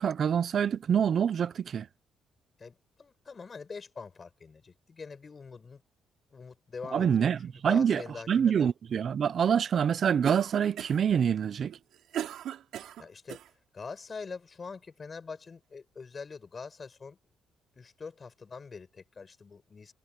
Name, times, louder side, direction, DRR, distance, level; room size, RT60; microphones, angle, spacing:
voice 1, 0.0-1.9 6.9-8.0 8.3-11.8, right 8 dB, 55° right, 0.8 m, -26 dB
voice 2, 2.6-5.8 6.3-8.3 8.6-8.7 13.0-13.4 13.7-17.2 17.7-19.9, left 5 dB, 35° left, 8.0 m, -44 dB
Cough, 10.2-11.1 11.7-13.5, right 11 dB, 80° right, 3.1 m, -38 dB
cardioid pair, 90°, 0 cm